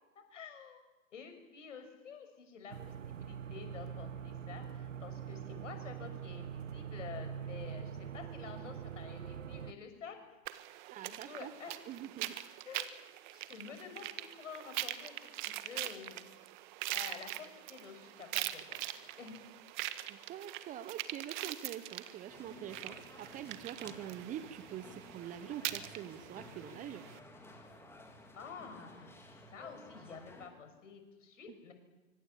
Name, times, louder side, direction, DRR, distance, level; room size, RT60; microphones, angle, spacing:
voice 1, 0.3-0.8 1.1-10.2 11.0-11.8 12.7-12.9 13.3-16.3 16.9-18.8 19.2-19.4 28.3-29.2 29.5-31.7, left 6 dB, 65° left, 7 dB, 6.6 m, -49 dB
sound 1, 2.7-9.7, right 8 dB, 65° right, 1.2 m, -43 dB
sound 2, 10.5-27.2, right 15 dB, 35° right, 1.6 m, -43 dB
voice 2, 10.9-12.4 20.1-27.0 31.5-31.6, right 10 dB, 20° right, 12 dB, 1.2 m, -45 dB
sound 3, 22.3-30.5, left 1 dB, 5° left, 3.9 m, -54 dB
24.5 x 24.5 x 8.7 m, 1.2 s
figure-of-eight pair, 120°, 40 cm